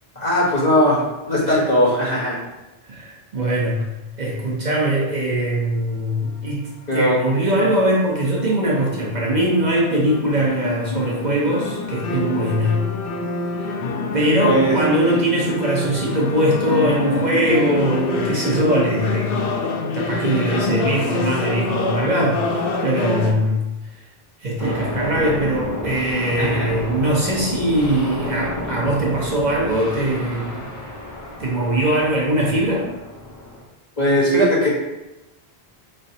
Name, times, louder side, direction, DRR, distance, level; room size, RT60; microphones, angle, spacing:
voice 1, 0.1-1.0 1.3-2.4 6.9-7.2 14.4-14.8 26.4-26.8 34.0-34.7, equal, 40° left, -6 dB, 1.3 m, -18 dB
voice 2, 2.9-12.8 13.6-13.8 14.1-19.6 19.9-23.7 23.9-24.0 24.4-30.7 31.4-32.9, right 1 dB, 50° right, -3 dB, 0.8 m, -21 dB
sound 1, 7.3-23.3, left 3 dB, 65° left, 0.7 m, -26 dB
sound 2, 24.6-33.6, left 1 dB, 20° left, 0.6 m, -31 dB
5.0 x 3.3 x 2.7 m, 1.0 s
omnidirectional pair, 1.0 m